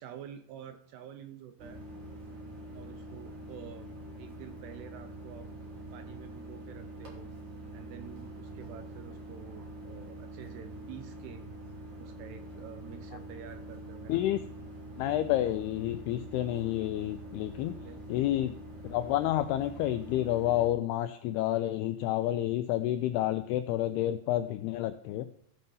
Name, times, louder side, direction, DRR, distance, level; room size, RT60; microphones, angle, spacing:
voice 1, 0.0-1.8 2.7-3.9 4.2-5.5 5.9-7.3 7.7-11.4 12.0-14.3 17.7-18.1, right 9 dB, 80° right, 9 dB, 2.6 m, -48 dB
sound 1, 1.6-20.7, right 1 dB, 35° right, 3.2 m, -45 dB
voice 2, 14.1-14.4 15.0-17.7 18.1-18.5 18.8-25.3, left 13 dB, 85° left, 10 dB, 2.3 m, -29 dB
15.0 x 5.4 x 5.5 m, 0.71 s
omnidirectional pair, 5.1 m